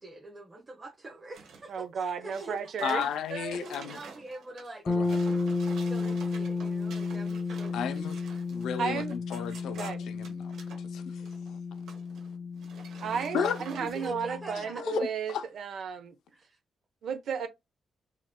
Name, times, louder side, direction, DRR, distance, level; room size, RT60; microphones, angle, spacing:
voice 1, 0.0-2.6 3.6-4.9 5.9-8.1 13.1-14.8 16.3-16.6, right 2 dB, 25° right, 1.0 m, -44 dB
sound 1, 1.3-1.8 2.2-10.8 11.2-11.5 11.8-12.3 12.6-14.1, right 5 dB, 85° right, 1.4 m, -49 dB
voice 2, 1.7-3.6 8.8-9.1 9.7-10.1 13.0-16.1 17.0-17.5, right 6 dB, 65° right, 0.9 m, -34 dB
voice 3, 2.8-4.0 4.9-5.2 7.7-8.2 8.5-10.5 10.9-11.6 13.3-13.6 14.8-15.4, left 8 dB, 85° left, 0.6 m, -34 dB
sound 2, 4.9-14.6, left 4 dB, 15° left, 0.9 m, -33 dB
5.0 x 3.0 x 2.2 m
cardioid pair, 115°, 0 cm